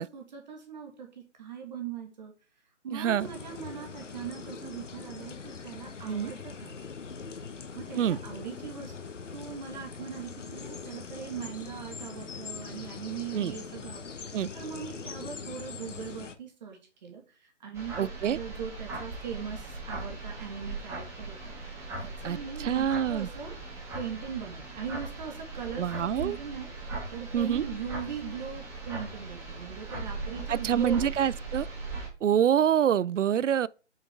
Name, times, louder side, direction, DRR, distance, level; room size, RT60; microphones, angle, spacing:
voice 1, 0.0-2.3 2.8-6.7 7.7-8.9 9.3-21.6 22.0-23.5 23.9-31.1, right 7 dB, 35° right, 2.0 m, -40 dB
voice 2, 2.9-3.3 6.1-6.3 8.0-8.2 13.3-13.5 14.3-14.5 18.0-18.4 22.2-23.3 25.8-26.4 27.3-27.6 30.5-31.7 32.2-33.7, right 9 dB, 80° right, 0.5 m, -26 dB
sound 1, 3.2-16.3, left 5 dB, 80° left, 1.3 m, -42 dB
sound 2, 17.7-32.1, right 3 dB, 10° right, 1.9 m, -39 dB
8.7 x 6.5 x 3.6 m
hypercardioid pair, 155°, 36 cm